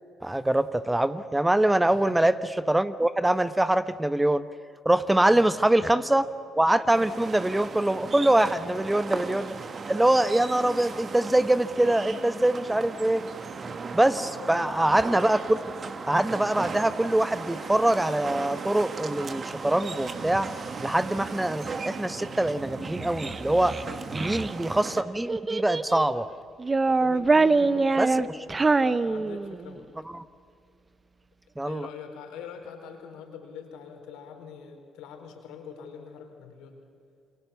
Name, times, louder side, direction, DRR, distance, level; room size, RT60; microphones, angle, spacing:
voice 1, 0.2-2.3 2.7-4.5 4.8-6.2 6.6-9.5 9.9-13.2 13.9-15.6 16.1-20.5 20.8-23.8 24.1-26.3 28.0-28.1 30.1-30.2 31.6-31.9, right 1 dB, 10° right, 12 dB, 1.1 m, -24 dB
voice 2, 1.8-2.3 5.3-6.1 7.0-7.2 8.7-9.0 14.4-14.8 23.8-24.1 26.8-28.3 28.8-29.9 31.6-36.8, left 7 dB, 75° left, 4 dB, 4.3 m, -43 dB
sound 1, 6.9-25.0, right 4 dB, 45° right, 2.1 m, -37 dB
Child speech kid speaking, 22.8-24.5 25.3-26.1 26.6-29.7, right 3 dB, 30° right, 0.9 m, -24 dB
28.5 x 26.0 x 7.1 m, 2.4 s
hypercardioid pair, 50°, 0 cm